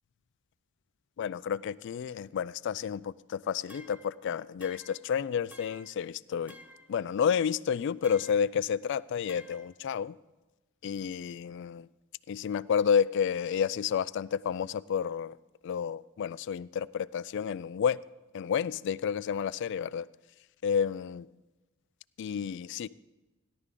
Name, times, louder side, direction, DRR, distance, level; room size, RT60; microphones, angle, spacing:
voice 1, 1.2-6.6 6.9-10.2 10.8-11.9 12.3-15.4 15.6-18.0 18.3-20.1 20.6-21.3 22.2-22.9, left 7 dB, 60° left, 18 dB, 0.3 m, -30 dB
sound 1, 3.7-4.1 4.6-5.1 5.5-6.0 6.5-6.9 8.0-8.5 9.3-9.7, equal, 5° right, 0.7 m, -52 dB
17.0 x 11.0 x 3.8 m, 1.1 s
head